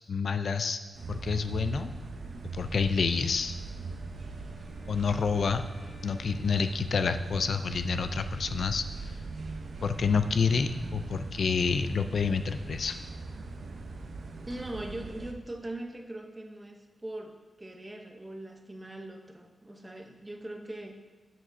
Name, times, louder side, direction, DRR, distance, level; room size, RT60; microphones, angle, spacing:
voice 1, 0.1-0.8 1.1-1.9 2.5-3.5 4.9-5.6 6.0-9.1 9.8-13.0, left 5 dB, 55° left, 10 dB, 0.3 m, -28 dB
sound 1, 0.9-15.3, right 3 dB, 60° right, 0.7 m, -40 dB
Wind instrument woodwind instrument, 3.2-7.8, left 2 dB, 75° left, 2.5 m, -57 dB
voice 2, 14.5-21.0, right 1 dB, 15° right, 4 dB, 0.7 m, -41 dB
10.0 x 7.4 x 2.6 m, 1.4 s
wide cardioid pair, 155°, 0 cm